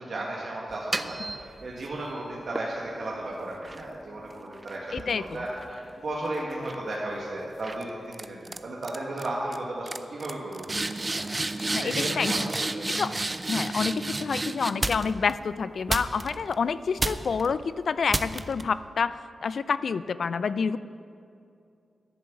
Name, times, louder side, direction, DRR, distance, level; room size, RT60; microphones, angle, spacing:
voice 1, 0.0-10.7 11.1-11.2 11.5-12.8, right 1 dB, 60° right, -4 dB, 1.7 m, -35 dB
sound 1, 0.7-1.9 2.6-6.1 6.5-6.9 7.6-7.8 8.1-8.6 8.8-9.3 9.5-9.6 9.9-15.3 15.9-16.5 17.0-17.5 18.1-18.6, right 2 dB, 25° right, 0.5 m, -32 dB
voice 2, 4.9-5.4 11.7-12.5 12.9-13.1 13.5-19.1 19.4-20.8, left 5 dB, 70° left, 15 dB, 0.4 m, -28 dB
11.0 x 7.1 x 8.4 m, 2.6 s
wide cardioid pair, 85°, 0 cm